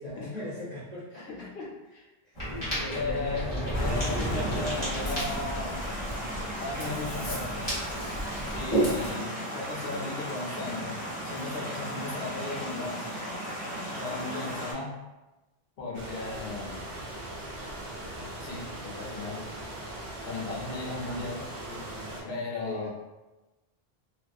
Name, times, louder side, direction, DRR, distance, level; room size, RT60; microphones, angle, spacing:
voice 1, 0.0-1.3 2.2-3.7 21.6-22.9, left 1 dB, 40° right, -10 dB, 1.0 m, -40 dB
voice 2, 1.2-2.0 2.9-5.8 6.6-7.6 8.5-10.9 11.2-13.1 14.0-15.0 15.8-16.9 18.2-19.5 20.2-21.4 22.3-22.9, left 3 dB, 70° left, -3 dB, 0.8 m, -36 dB
Ocean, 2.4-9.1, equal, 25° left, 1.0 m, -32 dB
sound 1, 3.7-14.7, equal, 10° right, 0.5 m, -36 dB
sound 2, 15.9-22.2, right 1 dB, 75° right, 0.9 m, -40 dB
2.3 x 2.2 x 2.5 m, 1.1 s
omnidirectional pair, 1.1 m